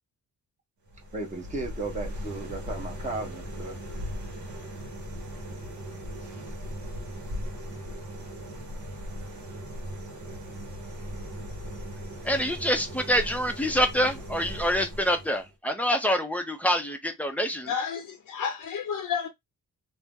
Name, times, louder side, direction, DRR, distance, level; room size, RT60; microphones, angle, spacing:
sound 1, 0.9-15.5, equal, 65° right, 1.0 m, -38 dB
voice 1, 1.1-3.8, right 2 dB, 25° right, 0.9 m, -35 dB
voice 2, 12.2-17.7, equal, 5° left, 0.5 m, -26 dB
voice 3, 17.7-19.3, left 7 dB, 85° left, 0.7 m, -31 dB
2.7 x 2.0 x 3.5 m
wide cardioid pair, 155°, 32 cm